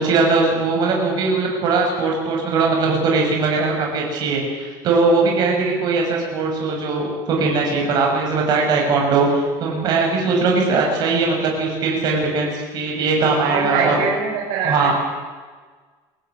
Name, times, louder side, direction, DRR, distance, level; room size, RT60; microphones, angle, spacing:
voice 1, 0.0-14.0 14.6-14.9, right 4 dB, 45° right, 0 dB, 6.8 m, -20 dB
voice 2, 13.4-14.9, right 6 dB, 70° right, -3 dB, 6.1 m, -23 dB
23.5 x 17.0 x 8.5 m, 1.4 s
cardioid pair, 150°, 10 cm